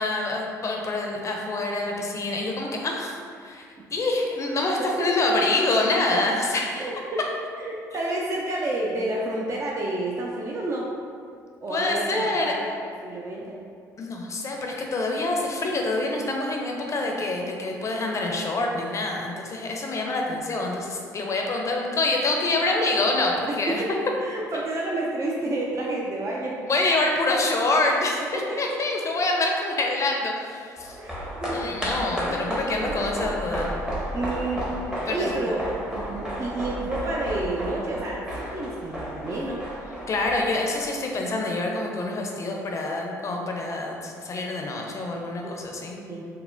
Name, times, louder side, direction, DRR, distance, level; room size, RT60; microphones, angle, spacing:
voice 1, 0.0-3.7 3.9-6.8 11.7-12.5 14.0-23.8 26.7-31.0 31.5-33.7 35.1-35.3 40.1-45.9, left 2 dB, 35° left, 0 dB, 0.5 m, -26 dB
voice 2, 6.7-7.2 7.6-10.9 11.6-13.6 17.0-17.3 23.5-27.0 28.3-28.6 31.0-31.9 32.2-33.3 34.1-34.7 34.9-39.6 45.4-46.3, right 2 dB, 30° right, -3 dB, 0.4 m, -30 dB
sound 1, 30.7-41.3 41.6-41.7, equal, 5° right, 0.8 m, -33 dB
4.0 x 2.1 x 2.6 m, 2.2 s
figure-of-eight pair, 50°, 9 cm